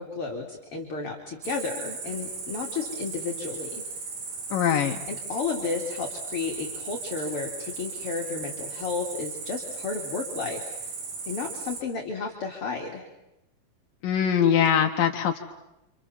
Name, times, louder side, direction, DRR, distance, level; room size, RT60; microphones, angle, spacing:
voice 1, 0.0-3.8 5.1-10.9 11.3-13.0, left 4 dB, 40° left, 2 dB, 3.5 m, -32 dB
Cricket, 1.4-11.8, right 4 dB, 75° right, 5.8 m, -37 dB
voice 2, 4.5-5.0 14.0-15.4, left 8 dB, 75° left, 4 dB, 3.0 m, -22 dB
29.0 x 28.0 x 7.3 m, 0.93 s
omnidirectional pair, 4.0 m